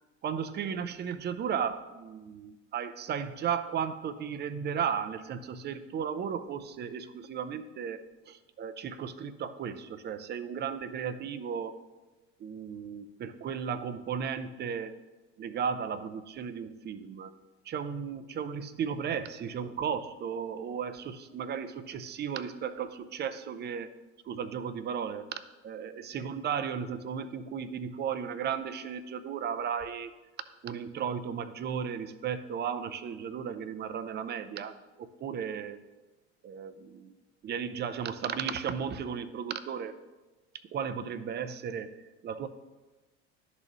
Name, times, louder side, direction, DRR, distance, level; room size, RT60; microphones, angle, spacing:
voice 1, 0.2-11.8 12.4-15.0 15.4-17.3 17.7-23.9 24.2-30.1 30.6-35.8 36.4-37.1 37.4-40.0 40.7-42.5, right 7 dB, 30° right, 11 dB, 0.5 m, -35 dB
11.5 x 4.1 x 3.0 m, 1.2 s
hypercardioid pair, 75°, 36 cm